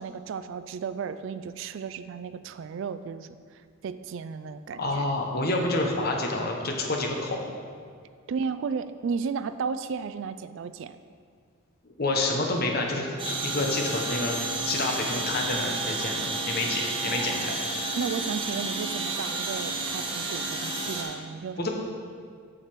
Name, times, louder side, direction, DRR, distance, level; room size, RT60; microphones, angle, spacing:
voice 1, 0.0-5.0 8.3-11.0 18.0-21.7, right 5 dB, 60° right, 12 dB, 0.3 m, -34 dB
voice 2, 4.8-7.5 12.0-14.4 14.6-17.6 21.6-21.7, left 2 dB, 45° left, 1 dB, 1.0 m, -28 dB
sound 1, 13.2-21.0, right 3 dB, 25° right, 1.0 m, -31 dB
7.3 x 6.7 x 4.6 m, 2.1 s
head